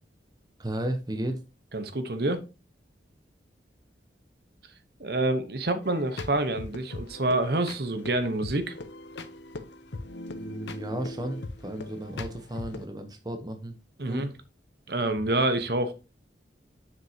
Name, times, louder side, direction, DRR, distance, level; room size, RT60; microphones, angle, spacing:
voice 1, 0.6-1.4 10.4-13.7 14.1-14.3, right 1 dB, 20° right, 0.8 m, -33 dB
voice 2, 1.7-2.4 5.0-8.7 14.0-14.3 14.9-15.9, right 2 dB, 55° right, 1.0 m, -27 dB
sound 1, 5.8-12.8, left 2 dB, 75° left, 0.8 m, -40 dB
7.4 x 6.4 x 2.8 m
head